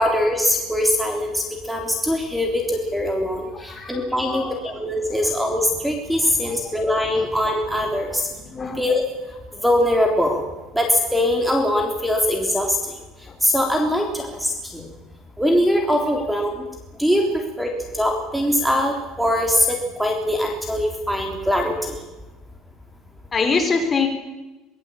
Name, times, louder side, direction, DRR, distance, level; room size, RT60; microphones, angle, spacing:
voice 1, 0.0-8.3 8.8-9.0 9.6-10.4 10.7-12.9 13.4-14.9 15.4-16.7 17.0-22.0, left 1 dB, 5° right, 3 dB, 3.5 m, -22 dB
voice 2, 3.5-4.7 5.1-5.4 6.2-6.7 7.2-7.3 8.3-8.8 13.3-13.4 23.3-24.1, left 4 dB, 20° left, 5 dB, 4.5 m, -26 dB
24.0 x 20.5 x 8.8 m, 1.1 s
cardioid pair, 150°, 0 cm